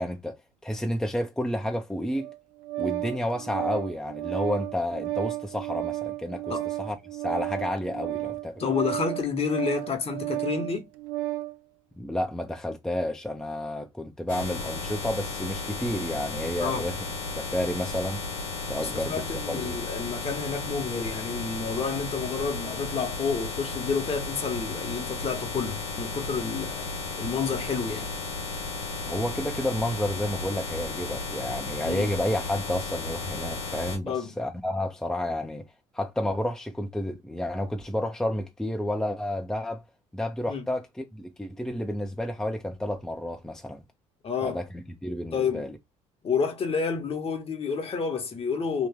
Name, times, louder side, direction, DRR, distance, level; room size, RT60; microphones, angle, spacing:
voice 1, 0.0-2.3 2.8-8.6 12.0-17.0 17.4-18.2 18.7-19.8 29.0-35.7 35.9-39.8 40.1-43.8 44.4-45.8, left 1 dB, 5° left, 0.6 m, -31 dB
Organ, 2.1-11.6, right 17 dB, 70° right, 0.4 m, -33 dB
voice 2, 8.6-10.9 16.6-16.8 18.8-26.9 27.2-28.1 31.8-32.1 34.0-34.3 40.5-40.7 44.2-44.6 45.3-45.7 46.2-48.9, left 5 dB, 35° left, 1.0 m, -30 dB
sound 1, 14.3-34.0, left 3 dB, 85° left, 0.9 m, -34 dB
2.9 x 2.4 x 3.5 m
hypercardioid pair, 60°, 16 cm